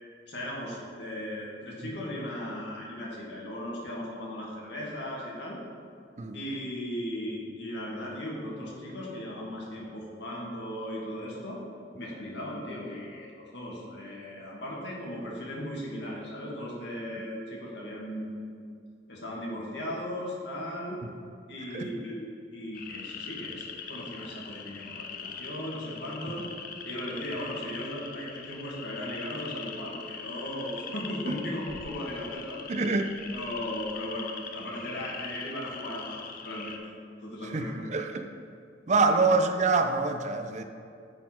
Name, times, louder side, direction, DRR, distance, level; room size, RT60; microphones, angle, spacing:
voice 1, 0.3-5.6 6.3-11.6 12.0-18.5 19.1-21.0 21.5-26.5 26.8-33.0 33.3-36.9 37.2-38.0 39.0-39.2, left 1 dB, 75° left, -4 dB, 1.9 m, -37 dB
sound 1, 22.7-36.8, left 6 dB, 50° left, 0.6 m, -42 dB
voice 2, 32.7-33.1 37.5-38.2 38.9-40.6, right 3 dB, 40° right, 6 dB, 0.4 m, -26 dB
9.8 x 4.1 x 4.5 m, 2.4 s
head